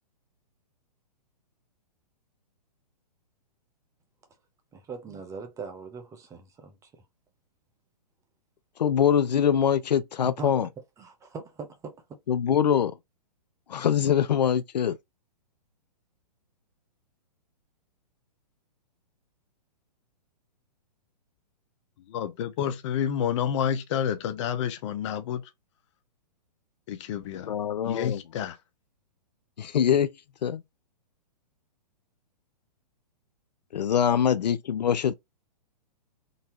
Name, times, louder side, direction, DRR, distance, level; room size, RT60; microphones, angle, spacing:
voice 1, 4.7-7.0 10.4-10.5 11.0-12.2, right 4 dB, 15° right, 0.7 m, -41 dB
voice 2, 8.8-10.7 12.3-12.9 13.7-15.0 27.5-28.2 29.6-30.1 30.4-30.6 33.7-35.1, left 8 dB, 75° left, 0.4 m, -23 dB
voice 3, 22.1-25.5 26.9-27.5 27.8-28.6, left 9 dB, 45° left, 0.8 m, -29 dB
3.9 x 2.7 x 2.9 m
figure-of-eight pair, 120°, 21 cm